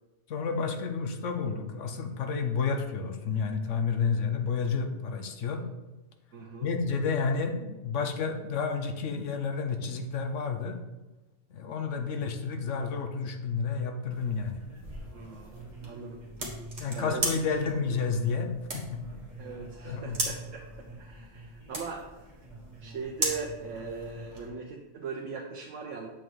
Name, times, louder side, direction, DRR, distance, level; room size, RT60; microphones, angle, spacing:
voice 1, 0.3-5.7 6.6-10.8 11.5-14.6 16.8-19.0 19.8-20.2, left 5 dB, 75° left, 6 dB, 1.1 m, -30 dB
voice 2, 6.3-6.7 15.1-16.2 16.9-17.2 17.7-17.8 19.4-22.1 22.8-26.1, right 5 dB, 75° right, 0 dB, 1.1 m, -40 dB
sound 1, 14.1-24.5, right 1 dB, 35° right, 1.5 m, -38 dB
7.6 x 3.8 x 4.7 m, 1.1 s
omnidirectional pair, 1.3 m